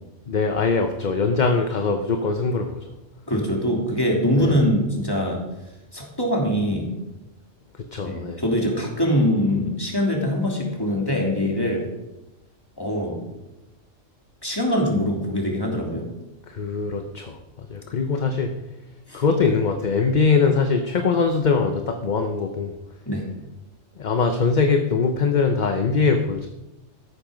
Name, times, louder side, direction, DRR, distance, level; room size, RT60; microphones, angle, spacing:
voice 1, 0.3-2.9 4.4-4.6 7.8-8.4 16.5-18.6 19.1-22.8 24.0-26.5, left 4 dB, 40° left, 6 dB, 0.9 m, -22 dB
voice 2, 3.3-5.4 5.9-6.9 8.0-11.9 12.8-13.2 14.4-16.1 19.1-19.2 23.1-23.2, equal, 15° left, -1 dB, 3.1 m, -23 dB
14.0 x 11.5 x 5.2 m, 1.0 s
omnidirectional pair, 1.3 m